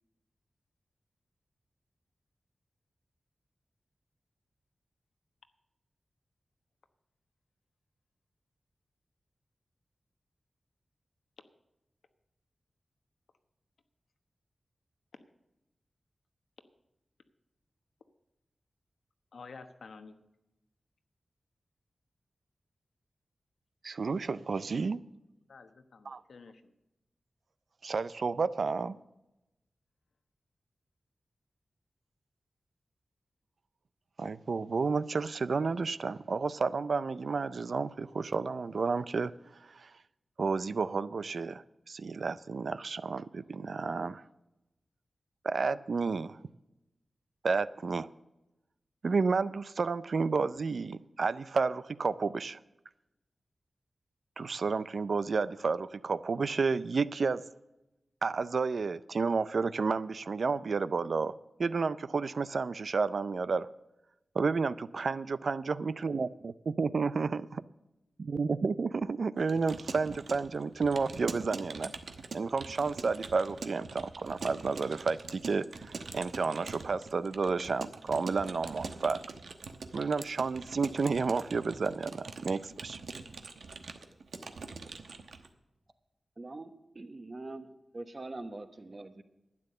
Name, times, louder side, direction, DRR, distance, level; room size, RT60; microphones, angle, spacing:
voice 1, 19.3-20.2 25.5-26.7, left 4 dB, 85° left, 8 dB, 1.1 m, -50 dB
voice 2, 23.8-25.0 26.1-26.2 27.8-29.0 34.2-39.3 39.8-39.9 40.4-44.2 45.4-46.4 47.4-48.1 49.0-52.6 54.4-57.4 58.2-61.3 61.6-63.7 64.3-67.4 68.3-71.9 72.3-75.7 76.1-79.2 79.9-83.0, right 4 dB, 65° right, 16 dB, 0.4 m, -31 dB
Keyboard (musical) / Computer keyboard, 69.4-85.5, right 4 dB, 85° right, 1.1 m, -44 dB
voice 3, 86.4-89.2, right 2 dB, 35° right, 9 dB, 1.1 m, -43 dB
12.0 x 9.9 x 6.7 m, 0.94 s
wide cardioid pair, 110°, 0 cm